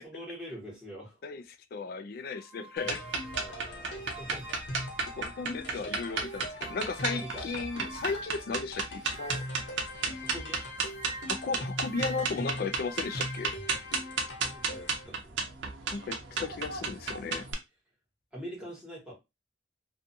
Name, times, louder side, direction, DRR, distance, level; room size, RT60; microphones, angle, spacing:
voice 1, 0.0-1.2 3.3-4.5 7.0-7.5 10.2-10.6 14.4-15.5 18.3-19.1, equal, 5° right, 1.2 m, -44 dB
voice 2, 1.7-3.1 5.1-9.4 11.3-13.5 15.9-17.5, left 4 dB, 55° left, 0.3 m, -35 dB
sound 1, 2.3-5.6 6.0-9.8 10.6-13.6, right 3 dB, 35° right, 0.4 m, -48 dB
sound 2, 2.8-15.1, left 1 dB, 80° left, 1.1 m, -41 dB
sound 3, 2.8-17.5, right 4 dB, 90° right, 0.6 m, -34 dB
2.5 x 2.4 x 2.6 m
head